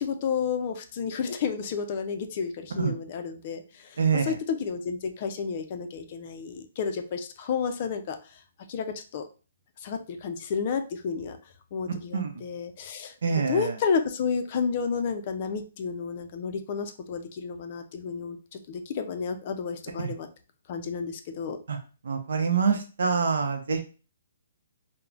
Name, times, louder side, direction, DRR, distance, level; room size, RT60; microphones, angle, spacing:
voice 1, 0.0-3.6 4.2-8.2 8.7-8.9 9.1-9.2 9.8-11.4 11.7-20.3 20.7-21.6, left 6 dB, 45° left, 7 dB, 0.4 m, -31 dB
voice 2, 4.0-4.4 11.9-12.3 13.2-13.8 20.0-20.1 21.7-21.8 22.0-23.8, right 5 dB, 75° right, 5 dB, 0.6 m, -26 dB
3.0 x 2.0 x 2.4 m, 0.34 s
hypercardioid pair, 145°, 0 cm